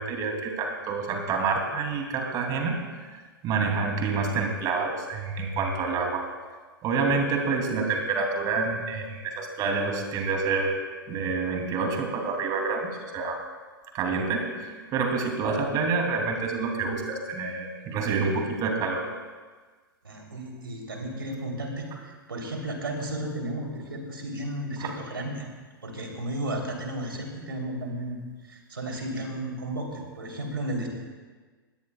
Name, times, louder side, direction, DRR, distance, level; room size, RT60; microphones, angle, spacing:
voice 1, 0.0-6.3 6.8-10.7 11.1-13.4 13.9-19.1 24.8-24.9, right 4 dB, 30° right, 2 dB, 2.8 m, -28 dB
voice 2, 20.0-25.5 25.8-28.2 28.4-30.9, right 1 dB, 80° right, 1 dB, 3.3 m, -33 dB
22.5 x 17.0 x 2.3 m, 1.4 s
figure-of-eight pair, 105°, 12 cm